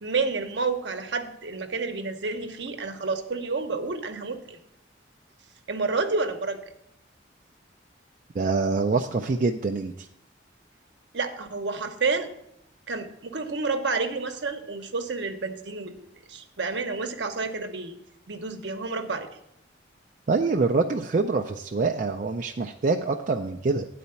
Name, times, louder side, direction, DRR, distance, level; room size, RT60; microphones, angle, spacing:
voice 1, 0.0-4.6 5.7-6.6 11.1-12.3 12.9-15.9 16.3-17.9 18.3-19.3, right 4 dB, 70° right, 6 dB, 0.8 m, -29 dB
voice 2, 8.3-10.1 20.3-23.9, right 4 dB, 45° right, 3 dB, 0.4 m, -25 dB
9.6 x 4.2 x 6.8 m, 0.77 s
head